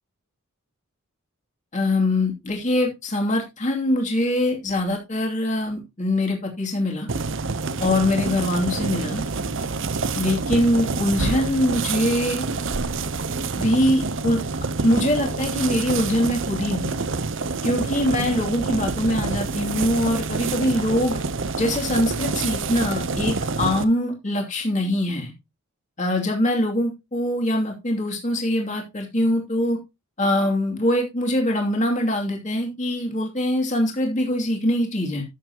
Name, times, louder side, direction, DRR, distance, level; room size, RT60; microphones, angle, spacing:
voice 1, 1.7-7.1 7.8-9.2 10.1-12.4 13.5-14.4 14.8-16.9 17.6-21.2 21.6-25.3 26.0-29.8 30.2-35.2, left 1 dB, 35° left, 2.7 m, -23 dB
sound 1, 7.1-23.8, right 4 dB, 55° right, 0.8 m, -27 dB
12.5 x 7.9 x 2.9 m
head